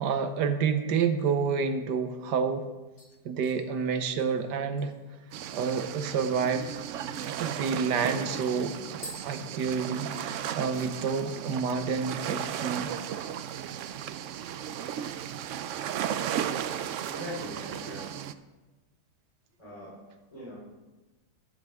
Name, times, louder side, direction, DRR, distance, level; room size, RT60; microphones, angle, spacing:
voice 1, 0.0-2.7 3.2-4.9 5.5-6.7 7.4-13.2, right 6 dB, 85° right, 9 dB, 1.5 m, -29 dB
sound 1, 3.0-5.8 6.1-6.2 6.6-6.8 7.2-10.2 10.5-11.0 11.3-11.7 12.0-12.1 14.2-14.8 15.1-15.9 16.3-16.6 17.1-18.0 18.4-18.5, equal, 60° left, 4.3 m, -53 dB
sound 2, 5.3-18.3, right 9 dB, 70° right, 0.7 m, -35 dB
voice 2, 17.1-18.2 19.6-20.1 20.3-20.6, equal, 20° left, -8 dB, 3.6 m, -41 dB
13.0 x 12.0 x 3.5 m, 1.2 s
omnidirectional pair, 1.8 m